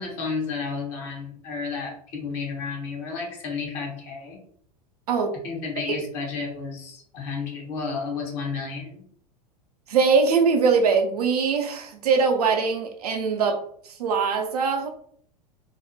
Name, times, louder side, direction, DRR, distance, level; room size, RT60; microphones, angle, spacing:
voice 1, 0.0-4.4 5.4-9.0, left 5 dB, 50° left, 0 dB, 1.0 m, -32 dB
voice 2, 9.9-13.6 13.8-14.9, right 5 dB, 80° right, 3 dB, 0.6 m, -22 dB
2.6 x 2.1 x 2.6 m, 0.63 s
hypercardioid pair, 90°, 20 cm